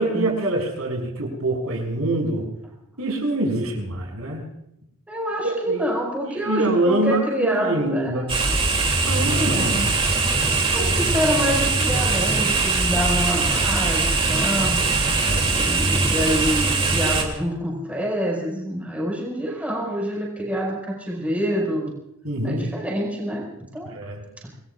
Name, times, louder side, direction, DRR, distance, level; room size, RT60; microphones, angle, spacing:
voice 1, 0.0-2.4 3.0-4.4 5.4-5.9 6.2-8.3 9.0-10.0 10.7-11.0 15.3-15.6 22.2-22.7 23.8-24.2, right 1 dB, 75° right, 1 dB, 6.6 m, -25 dB
voice 2, 5.1-8.6 9.2-9.9 10.4-14.9 15.5-21.9 22.4-23.9 24.4-24.5, equal, 5° right, -2 dB, 5.4 m, -27 dB
sound 1, 8.3-17.2, right 3 dB, 25° right, 2.9 m, -21 dB
28.0 x 20.5 x 2.5 m, 0.81 s
head